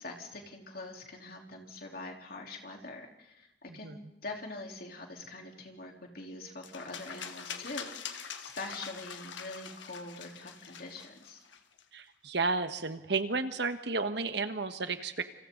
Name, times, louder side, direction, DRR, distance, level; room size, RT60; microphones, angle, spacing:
voice 1, 0.0-11.4, left 2 dB, 50° left, 1 dB, 3.8 m, -44 dB
sound 1, 6.6-11.8, left 7 dB, 75° left, 1.6 m, -44 dB
voice 2, 11.9-15.2, right 3 dB, 60° right, 9 dB, 1.5 m, -32 dB
28.5 x 27.0 x 4.0 m, 0.93 s
head